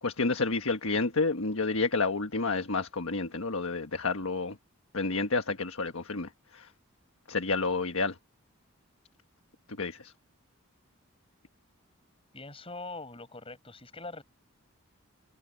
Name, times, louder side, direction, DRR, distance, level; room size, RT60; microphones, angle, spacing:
voice 1, 0.0-4.6 4.9-6.7 7.3-8.2 9.8-10.1, left 3 dB, 75° left, 1.4 m, -30 dB
voice 2, 12.3-14.2, left 3 dB, 25° left, 8.0 m, -42 dB
head